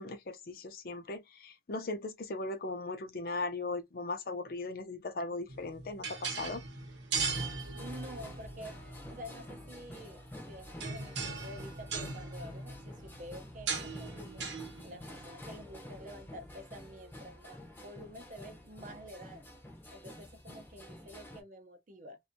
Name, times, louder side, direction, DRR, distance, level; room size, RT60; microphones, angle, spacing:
voice 1, 0.0-6.6, left 2 dB, 55° left, 0.5 m, -38 dB
sound 1, 5.5-16.9, right 4 dB, 85° right, 0.8 m, -40 dB
sound 2, 7.3-21.4, left 1 dB, 10° left, 0.6 m, -49 dB
voice 2, 7.7-14.5 14.8-19.5 19.9-22.2, equal, 45° right, 0.5 m, -49 dB
2.5 x 2.3 x 2.6 m
head